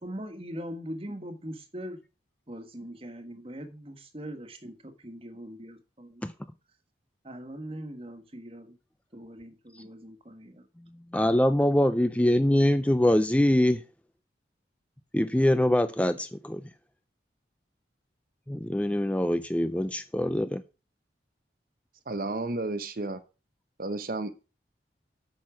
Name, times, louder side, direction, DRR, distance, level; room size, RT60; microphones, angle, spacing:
voice 1, 0.0-2.0 2.5-6.2 7.2-8.8 9.1-10.7, equal, 30° right, 1.5 m, -41 dB
voice 2, 11.1-13.8 15.1-16.6 18.5-20.6, left 1 dB, 5° left, 0.4 m, -24 dB
voice 3, 22.1-23.2 23.8-24.3, right 2 dB, 50° right, 0.8 m, -32 dB
8.7 x 6.3 x 6.0 m
head